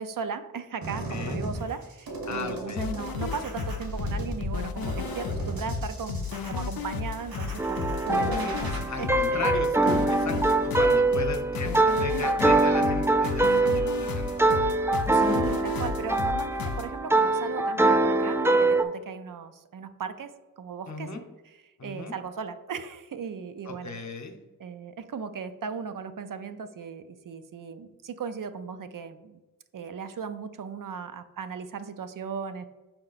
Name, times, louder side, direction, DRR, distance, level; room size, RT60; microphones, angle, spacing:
voice 1, 0.0-9.5 10.3-10.5 15.1-21.1 21.8-24.0 24.6-29.4 29.7-32.7, right 6 dB, 65° right, 10 dB, 0.5 m, -37 dB
sound 1, 0.8-8.8, right 1 dB, 85° right, 1.3 m, -37 dB
voice 2, 1.1-1.4 2.3-3.1 8.9-14.4 15.5-15.6 20.9-21.2 21.8-22.1 23.7-24.4, left 4 dB, 55° left, 5 dB, 0.8 m, -36 dB
sound 2, 2.8-16.9, left 6 dB, 85° left, 0.5 m, -33 dB
sound 3, 7.6-18.8, right 2 dB, 10° right, 0.3 m, -24 dB
5.4 x 4.3 x 4.0 m, 1.1 s
wide cardioid pair, 100°, 35 cm